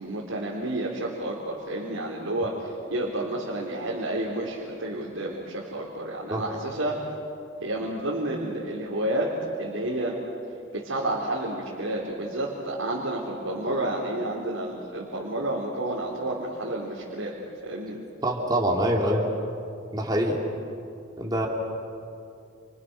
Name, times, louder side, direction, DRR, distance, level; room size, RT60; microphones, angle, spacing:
voice 1, 0.0-7.0 7.6-9.3 9.6-10.2 10.7-17.4 17.6-18.0, right 1 dB, 90° right, -5 dB, 4.2 m, -30 dB
voice 2, 18.2-19.3 19.9-20.4 21.2-21.5, right 1 dB, 20° right, -1 dB, 3.2 m, -24 dB
29.5 x 29.5 x 6.4 m, 2.6 s
head